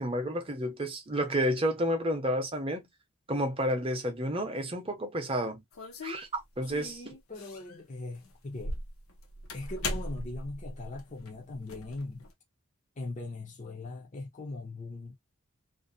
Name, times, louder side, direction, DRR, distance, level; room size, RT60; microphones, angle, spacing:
voice 1, 0.0-2.9 3.3-5.6 6.0-7.1, equal, 25° right, 0.6 m, -31 dB
sound 1, 5.7-6.7 7.3-7.8 8.1-12.3, left 1 dB, 75° left, 0.6 m, -39 dB
voice 2, 6.7-8.8 9.5-12.3 13.0-15.2, left 2 dB, 35° left, 0.5 m, -40 dB
2.5 x 2.1 x 2.5 m
head